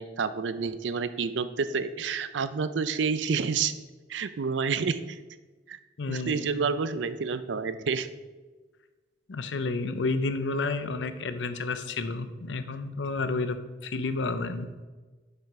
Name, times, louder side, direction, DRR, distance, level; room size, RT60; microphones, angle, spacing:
voice 1, 0.0-3.7 4.1-5.2 5.7-5.8 6.1-8.1, right 5 dB, 75° right, 13 dB, 0.5 m, -29 dB
voice 2, 6.0-6.5 9.3-14.7, left 3 dB, 80° left, 11 dB, 0.6 m, -30 dB
7.4 x 5.7 x 4.7 m, 1.3 s
head